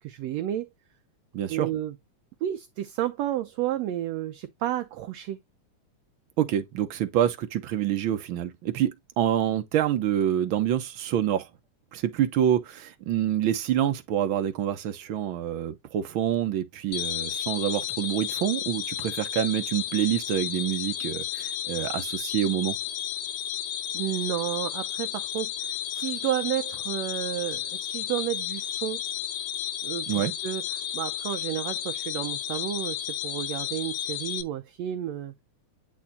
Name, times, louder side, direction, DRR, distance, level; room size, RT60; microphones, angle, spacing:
voice 1, 0.0-0.7 1.5-1.9 2.4-5.4 23.9-29.0 29.8-30.6 30.9-35.3, right 12 dB, 75° right, 1.6 m, -31 dB
voice 2, 1.3-1.7 6.4-8.9 9.2-11.5 11.9-22.8 30.1-30.3, right 11 dB, 90° right, 1.1 m, -27 dB
sound 1, 16.9-34.4, left 10 dB, 70° left, 2.2 m, -33 dB
9.6 x 4.3 x 2.8 m
omnidirectional pair, 3.6 m